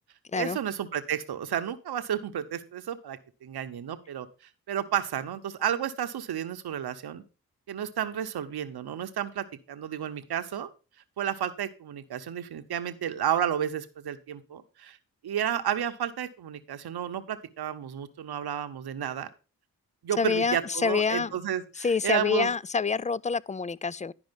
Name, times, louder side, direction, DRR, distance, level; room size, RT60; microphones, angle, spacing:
voice 1, 0.3-4.3 4.7-7.2 7.7-10.7 11.2-15.0 15.2-19.3 20.0-22.5, right 9 dB, 80° right, 0.9 m, -32 dB
voice 2, 20.2-21.4 21.8-24.1, left 5 dB, 20° left, 0.3 m, -27 dB
10.5 x 5.1 x 5.2 m
cardioid pair, 40°, 38 cm